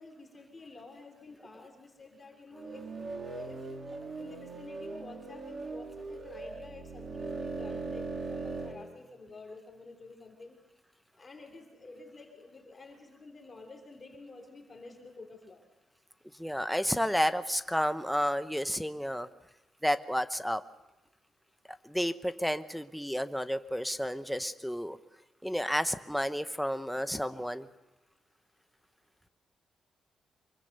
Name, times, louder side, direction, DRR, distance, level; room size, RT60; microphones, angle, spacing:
voice 1, 0.0-3.6 4.2-10.6 11.2-15.6 27.2-27.5, left 3 dB, 25° left, 2 dB, 3.3 m, -50 dB
sound 1, 2.5-8.7, right 3 dB, 40° right, 4.0 m, -39 dB
voice 2, 16.4-19.3 19.8-20.6 21.8-25.0 25.4-27.7, equal, ahead, 10 dB, 0.9 m, -31 dB
25.0 x 23.5 x 6.7 m, 0.97 s
cardioid pair, 130°, 0 cm